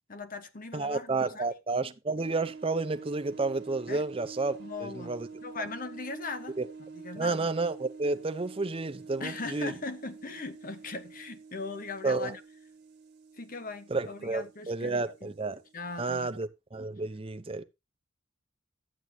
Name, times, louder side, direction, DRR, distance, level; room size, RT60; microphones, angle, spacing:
voice 1, 0.0-1.5 3.9-4.0 4.6-5.1 5.4-6.6 6.9-7.5 9.2-12.4 13.4-15.3 15.7-16.3, left 3 dB, 45° left, 1.1 m, -39 dB
voice 2, 0.7-5.3 6.6-6.7 7.2-9.7 12.0-12.4 13.9-15.6 16.0-17.6, right 3 dB, 30° right, 0.7 m, -31 dB
sound 1, 2.2-16.4, right 4 dB, 55° right, 1.7 m, -48 dB
12.5 x 8.1 x 2.8 m
head